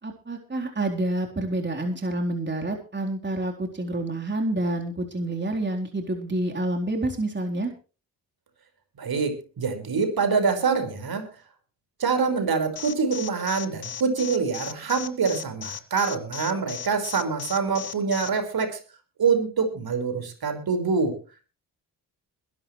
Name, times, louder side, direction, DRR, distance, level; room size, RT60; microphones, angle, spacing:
voice 1, 0.0-7.7, right 1 dB, 25° right, 2 dB, 4.0 m, -28 dB
voice 2, 9.0-11.3 12.0-18.8 19.2-21.1, right 5 dB, 55° right, 8 dB, 5.3 m, -25 dB
Alarm, 12.8-18.3, left 9 dB, 60° left, 2.1 m, -36 dB
21.5 x 12.0 x 3.3 m, 0.34 s
supercardioid pair, 60°, 42 cm